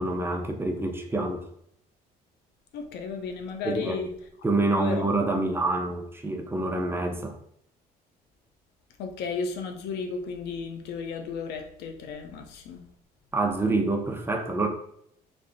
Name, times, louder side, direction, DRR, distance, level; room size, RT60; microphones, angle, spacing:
voice 1, 0.0-1.5 3.6-4.0 4.4-7.4 13.3-14.7, right 2 dB, 15° right, 3 dB, 0.7 m, -27 dB
voice 2, 2.7-4.1 4.8-5.1 9.0-12.9, left 5 dB, 80° left, 6 dB, 0.7 m, -34 dB
3.4 x 3.2 x 3.9 m, 0.71 s
cardioid pair, 110°, 17 cm